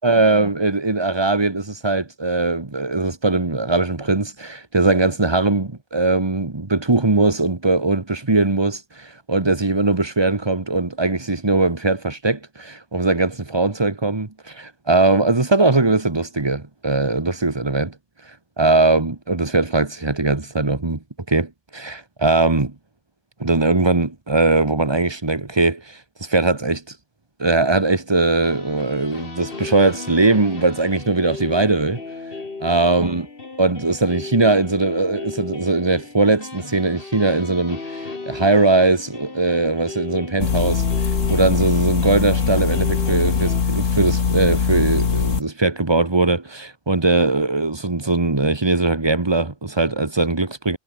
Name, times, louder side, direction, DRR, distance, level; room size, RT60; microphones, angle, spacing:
voice 1, 0.0-17.9 18.6-21.0 21.3-22.7 23.4-26.8 27.4-32.0 32.6-33.3 33.6-40.8 41.3-50.8, right 3 dB, 20° right, 1.4 m, -20 dB
sound 1, 28.1-43.6, left 3 dB, 45° left, 2.5 m, -36 dB
sound 2, 40.4-45.4, left 6 dB, 80° left, 2.0 m, -21 dB
omnidirectional pair, 1.3 m